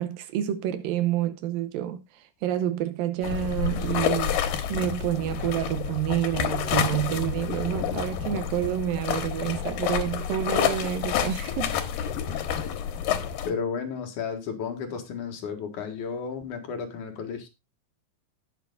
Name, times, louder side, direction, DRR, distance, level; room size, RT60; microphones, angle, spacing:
voice 1, 0.0-4.4 4.7-12.1, right 12 dB, 90° right, 2.6 m, -28 dB
sound 1, 3.2-13.5, left 9 dB, 85° left, 2.9 m, -29 dB
voice 2, 13.4-17.5, left 6 dB, 65° left, 3.0 m, -33 dB
18.0 x 6.8 x 2.4 m
omnidirectional pair, 3.9 m